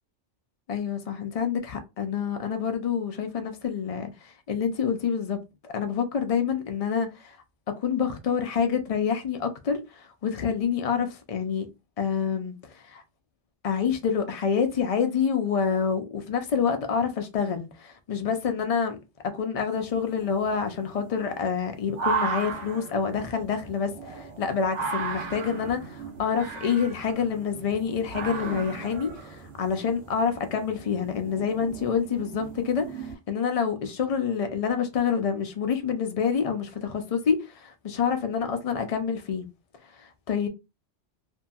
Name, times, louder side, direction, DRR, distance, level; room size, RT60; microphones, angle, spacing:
voice 1, 0.7-7.4 7.7-11.7 12.0-13.0 13.6-19.0 19.2-39.5 39.8-40.5, left 6 dB, 75° left, 0.3 m, -27 dB
sound 1, 19.7-33.2, right 5 dB, 85° right, 1.2 m, -36 dB
2.7 x 2.6 x 2.3 m
omnidirectional pair, 1.2 m